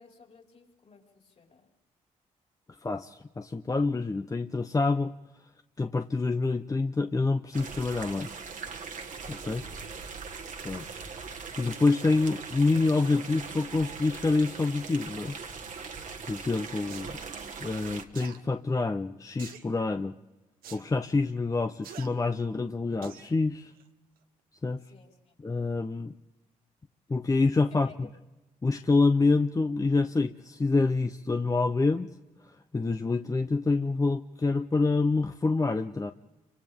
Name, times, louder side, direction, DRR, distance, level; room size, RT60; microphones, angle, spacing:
voice 1, 0.0-1.7 24.8-25.3 27.7-28.1, left 5 dB, 50° left, 1 dB, 4.8 m, -55 dB
voice 2, 2.8-5.1 5.8-8.3 9.3-9.6 10.6-10.9 11.6-15.4 16.3-17.2 17.6-20.2 20.7-23.7 24.6-24.8 25.4-26.1 27.1-27.9 28.6-32.1 32.7-36.1, left 3 dB, 25° left, 7 dB, 0.7 m, -27 dB
sound 1, 7.5-18.0, right 5 dB, 60° right, 1.6 m, -41 dB
sound 2, 16.9-17.1 18.1-18.4 19.4-19.7 20.6-20.8 21.8-22.1 23.0-23.3 23.8-23.9, right 8 dB, 80° right, 1.2 m, -45 dB
28.5 x 25.5 x 3.6 m, 1.1 s
supercardioid pair, 60°, 15 cm